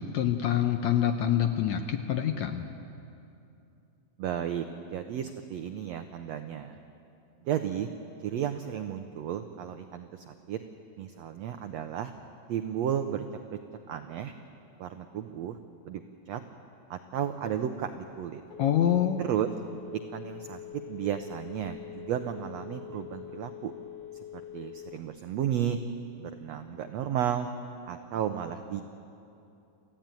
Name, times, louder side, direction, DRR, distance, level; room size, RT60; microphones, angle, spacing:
voice 1, 0.0-2.7 18.6-19.2, left 10 dB, 75° left, 6 dB, 1.7 m, -26 dB
voice 2, 4.2-6.8 7.4-7.9 8.2-10.6 11.0-12.1 12.5-13.2 13.9-14.3 14.8-15.6 15.8-16.4 16.9-18.4 19.2-19.5 19.9-23.7 24.5-25.8 26.2-27.5 27.9-28.8, right 10 dB, 85° right, 7 dB, 1.5 m, -33 dB
Telephone, 18.0-25.3, left 11 dB, 90° left, 1.2 m, -44 dB
27.5 x 15.0 x 9.1 m, 2.7 s
omnidirectional pair, 4.0 m